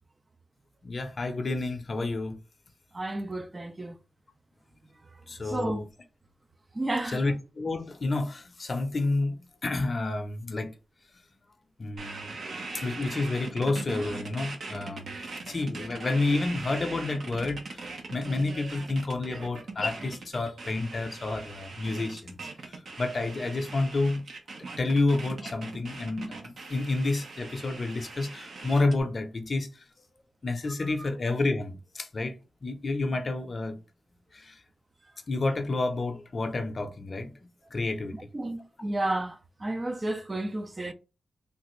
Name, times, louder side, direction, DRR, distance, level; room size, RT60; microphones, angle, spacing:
voice 1, 0.8-2.4 5.3-5.9 7.1-9.4 9.6-10.7 11.8-12.4 12.7-15.2 15.5-22.4 22.7-24.2 24.8-29.7 30.4-32.4 32.6-33.8 34.3-34.6 35.3-37.3 37.7-38.2, left 2 dB, 45° left, 0.6 m, -29 dB
voice 2, 2.9-3.9 5.4-5.8 6.7-7.2 31.0-31.1 38.3-40.9, right 2 dB, 25° right, 0.3 m, -32 dB
sound 1, 12.0-29.0, right 3 dB, 70° right, 0.8 m, -40 dB
3.2 x 2.4 x 3.0 m
wide cardioid pair, 95°, 0 cm